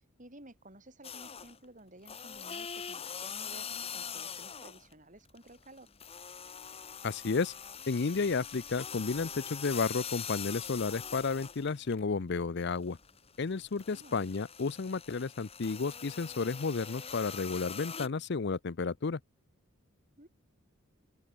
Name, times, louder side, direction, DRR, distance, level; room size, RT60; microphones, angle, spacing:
voice 1, 0.2-5.9 13.9-14.2 20.2-20.3, right 1 dB, 35° right, 6.4 m, -54 dB
sound 1, 1.0-1.6 2.0-4.9 5.2-12.0 12.4-18.1, left 7 dB, 30° left, 2.1 m, -43 dB
voice 2, 7.0-7.5 7.9-13.0 13.4-19.2, left 4 dB, 55° left, 0.6 m, -32 dB
open air
head